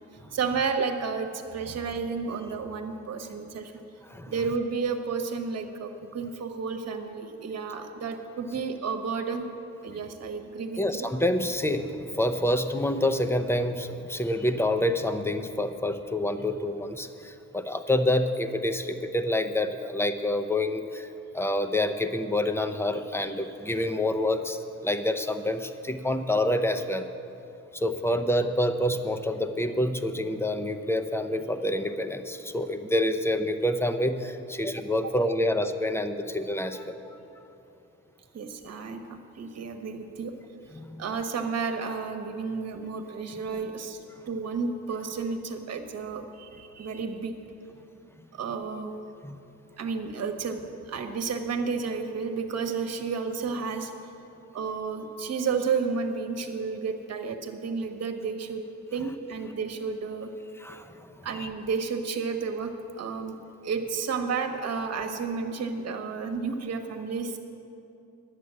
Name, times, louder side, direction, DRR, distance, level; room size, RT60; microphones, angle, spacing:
voice 1, 0.3-3.7 4.3-9.5 9.8-11.1 38.3-40.3 41.0-44.0 44.3-47.3 48.3-48.9 49.8-53.9 54.5-58.6 58.9-60.3 61.2-63.4 63.6-67.4, right 5 dB, 55° right, 6 dB, 1.2 m, -31 dB
voice 2, 10.8-21.1 21.3-27.1 27.7-37.2 40.7-41.0 49.2-49.4 60.6-61.5, left 1 dB, 10° left, 8 dB, 0.7 m, -27 dB
11.0 x 8.2 x 7.5 m, 2.8 s
cardioid pair, 90°, 30 cm